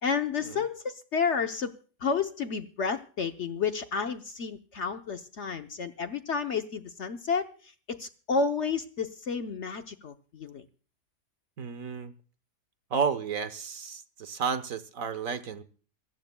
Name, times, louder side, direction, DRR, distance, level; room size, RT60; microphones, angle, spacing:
voice 1, 0.0-1.7 2.0-7.5 7.9-10.6, left 5 dB, 55° left, 7 dB, 1.0 m, -31 dB
voice 2, 11.6-12.1 12.9-15.6, right 6 dB, 60° right, 12 dB, 1.3 m, -32 dB
27.0 x 14.0 x 2.2 m, 0.40 s
omnidirectional pair, 1.7 m